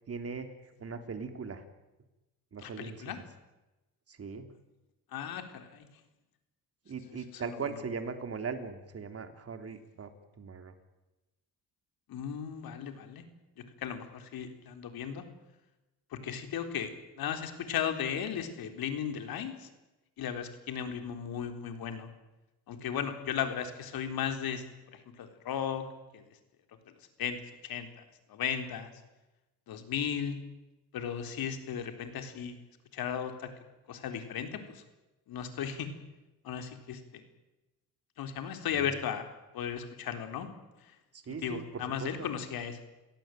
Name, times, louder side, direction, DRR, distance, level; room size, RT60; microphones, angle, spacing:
voice 1, 0.1-1.6 2.5-3.2 4.1-4.5 6.9-10.1 10.4-10.7 38.7-38.9 41.1-42.3, right 5 dB, 40° right, 7 dB, 3.4 m, -40 dB
voice 2, 2.6-3.2 5.1-5.9 7.4-7.6 12.1-13.2 13.6-15.2 16.1-19.7 20.2-22.1 22.7-24.6 24.9-25.8 26.1-26.2 27.2-27.4 27.6-28.0 28.3-28.9 29.7-30.4 30.9-32.6 32.9-33.5 33.9-34.8 35.3-35.9 36.4-37.2 38.2-39.3 39.5-40.5 41.4-42.8, left 8 dB, 70° left, 7 dB, 4.0 m, -36 dB
29.5 x 17.5 x 9.3 m, 1.0 s
cardioid pair, 100°, 37 cm